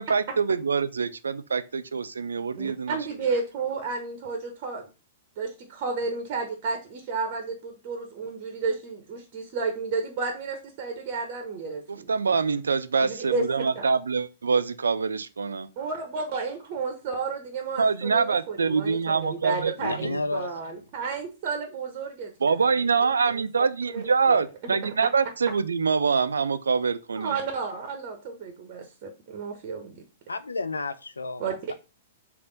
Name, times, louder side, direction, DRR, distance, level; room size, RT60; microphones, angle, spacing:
voice 1, 0.0-3.0 11.9-15.7 17.8-20.2 22.4-27.4, right 5 dB, 85° right, 0.3 m, -25 dB
voice 2, 2.6-4.9 5.4-12.1 13.0-13.4 15.8-22.7 23.0-23.4 23.9-24.0 24.3-24.4 27.2-30.0 31.4-31.5, right 4 dB, 45° right, 0.8 m, -32 dB
voice 3, 19.8-20.9 30.3-31.7, left 3 dB, 90° left, 0.3 m, -32 dB
3.4 x 2.5 x 3.9 m
hypercardioid pair, 110°, 0 cm